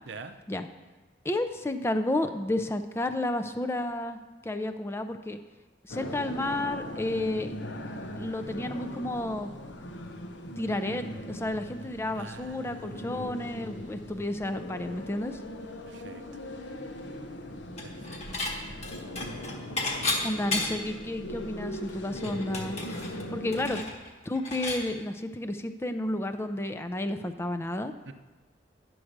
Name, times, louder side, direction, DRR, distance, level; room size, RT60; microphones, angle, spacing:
voice 1, 1.2-5.4 5.8-7.5 8.1-9.5 10.6-15.4 20.2-22.8 23.3-23.8 24.3-27.9, left 1 dB, 15° left, 7 dB, 0.4 m, -31 dB
sound 1, 5.9-23.8, left 1 dB, 85° left, 0.9 m, -40 dB
voice 2, 12.1-13.0 15.9-16.2 17.8-18.2 28.1-28.2, right 4 dB, 85° right, 9 dB, 0.6 m, -45 dB
Dishes pots and pans / Chink clink, 17.8-18.5 18.8-20.9 21.4-21.5 21.7-24.8, left 3 dB, 40° left, 1.3 m, -33 dB
10.0 x 4.7 x 6.5 m, 1.2 s
head